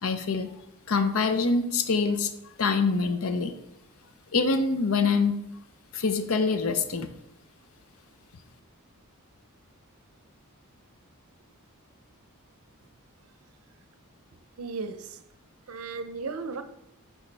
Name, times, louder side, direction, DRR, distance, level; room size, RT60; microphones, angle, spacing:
voice 1, 0.0-0.5 0.9-2.3 2.6-3.5 4.3-5.4 5.9-7.1, left 4 dB, 70° left, 9 dB, 0.6 m, -25 dB
voice 2, 14.6-15.2 15.7-16.6, right 4 dB, 80° right, 9 dB, 0.6 m, -35 dB
8.9 x 4.9 x 3.3 m, 0.83 s
head